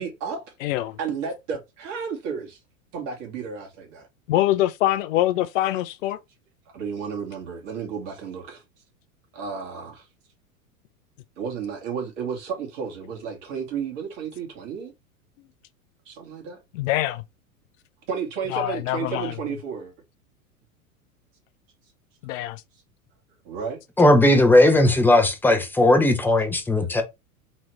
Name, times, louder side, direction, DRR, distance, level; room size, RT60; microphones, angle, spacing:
voice 1, 0.0-0.5 1.0-2.6 2.9-4.1 6.7-8.6 9.3-10.1 11.4-14.9 16.1-16.6 18.1-19.9 23.4-23.8, right 6 dB, 55° right, 2.2 m, -32 dB
voice 2, 0.6-1.0 4.3-6.2 16.7-17.2 18.5-19.3 22.2-22.6, left 14 dB, 60° left, 0.6 m, -24 dB
voice 3, 24.0-27.0, left 1 dB, 5° left, 0.9 m, -17 dB
4.1 x 2.9 x 3.2 m
hypercardioid pair, 95°, 44 cm